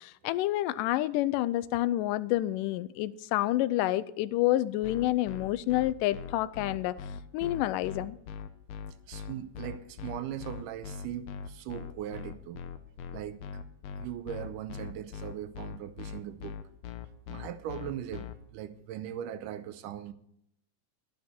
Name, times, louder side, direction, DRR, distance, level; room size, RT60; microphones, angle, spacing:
voice 1, 0.0-7.0 7.3-8.2, left 15 dB, 90° left, 2.2 m, -28 dB
sound 1, 4.8-18.3, left 6 dB, 75° left, 1.6 m, -41 dB
voice 2, 9.1-12.6 13.1-13.4 14.0-16.6 17.3-20.1, right 10 dB, 85° right, 2.2 m, -39 dB
12.5 x 10.5 x 4.4 m
omnidirectional pair, 3.7 m